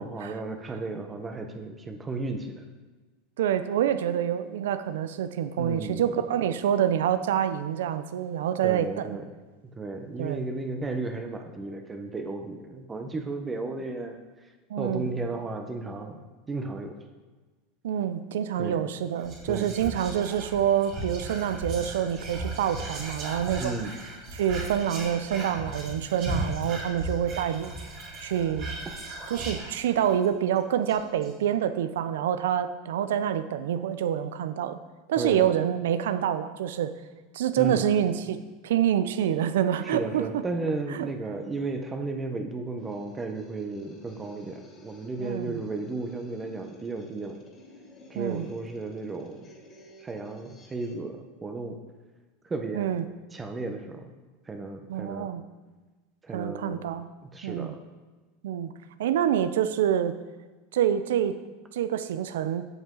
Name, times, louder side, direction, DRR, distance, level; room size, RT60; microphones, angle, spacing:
voice 1, 0.0-2.6 5.6-6.1 8.6-9.2 9.8-14.5 14.8-17.0 18.6-18.8 19.5-20.0 23.6-23.9 35.2-35.5 37.6-37.8 39.8-47.4 48.1-49.5 50.0-51.8 52.4-52.9 53.3-54.1 54.5-55.3 56.2-56.8 57.2-57.8, right 3 dB, 20° right, 5 dB, 0.9 m, -34 dB
voice 2, 3.4-9.2 10.2-10.4 14.7-15.1 17.8-23.7 24.3-27.7 28.2-28.7 29.3-34.8 35.1-36.9 37.3-40.4 40.9-41.1 45.2-45.6 48.2-48.5 52.7-53.0 54.9-55.4 56.3-57.1 57.4-57.7 58.4-58.7 59.0-60.2 60.7-61.4 61.7-62.7, right 10 dB, 80° right, 12 dB, 0.5 m, -27 dB
Whispering, 19.2-30.3 30.6-30.7 30.9-31.3, right 2 dB, 55° right, 2.9 m, -36 dB
sound 1, 42.8-51.0, left 1 dB, 35° left, 2.2 m, -51 dB
8.0 x 7.2 x 3.8 m, 1.3 s
supercardioid pair, 110°, 0 cm